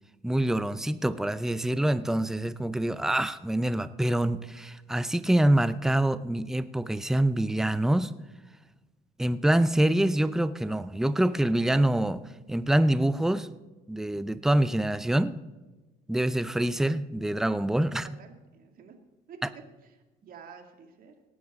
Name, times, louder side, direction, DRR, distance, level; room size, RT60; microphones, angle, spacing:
voice 1, 0.2-8.1 9.2-12.2 12.5-13.5 13.9-15.4 16.1-18.1, right 1 dB, 5° right, 0.5 m, -25 dB
voice 2, 17.9-19.0 19.3-19.6 19.9-21.1, right 6 dB, 60° right, 2.3 m, -50 dB
18.0 x 11.0 x 3.7 m
cardioid pair, 110°, 17 cm